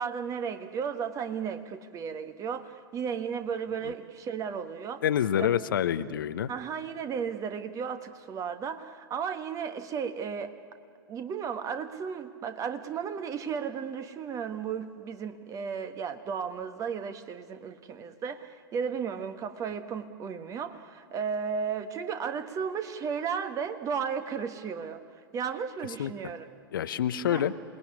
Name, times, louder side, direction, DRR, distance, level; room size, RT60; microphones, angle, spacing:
voice 1, 0.0-5.0 5.4-5.5 6.5-10.5 11.1-25.0 25.3-26.5 27.3-27.5, right 6 dB, 25° right, 9 dB, 1.5 m, -34 dB
voice 2, 5.0-6.5 26.0-26.1 26.7-27.5, left 10 dB, 60° left, 13 dB, 0.9 m, -27 dB
27.5 x 19.5 x 9.8 m, 2.2 s
figure-of-eight pair, 95°, 12 cm